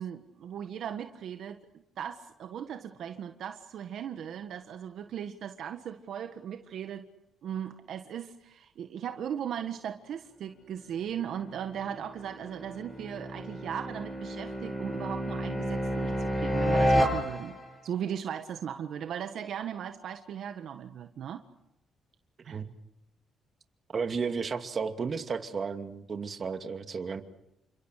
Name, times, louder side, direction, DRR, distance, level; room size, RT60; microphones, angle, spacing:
voice 1, 0.0-7.0 7.4-17.5 17.8-21.4 22.4-22.6, right 9 dB, 70° right, 7 dB, 1.5 m, -38 dB
sound 1, 11.4-17.8, equal, 25° left, 7.8 m, -30 dB
voice 2, 22.4-22.7 23.9-27.2, right 5 dB, 45° right, 7 dB, 2.5 m, -33 dB
29.5 x 26.0 x 6.7 m, 0.87 s
cardioid pair, 90°, 0 cm